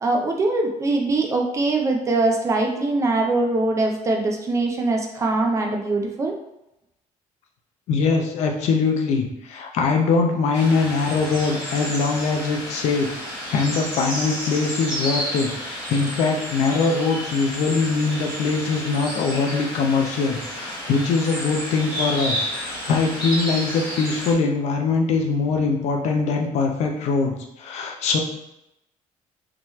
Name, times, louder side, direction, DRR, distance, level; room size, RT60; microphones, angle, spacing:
voice 1, 0.0-6.4, right 2 dB, 20° right, 2 dB, 0.4 m, -22 dB
voice 2, 7.9-28.2, left 4 dB, 55° left, 2 dB, 0.6 m, -22 dB
sound 1, 10.5-24.3, equal, ahead, 1.5 m, -31 dB
3.6 x 2.8 x 3.0 m, 0.88 s
cardioid pair, 180°, 14 cm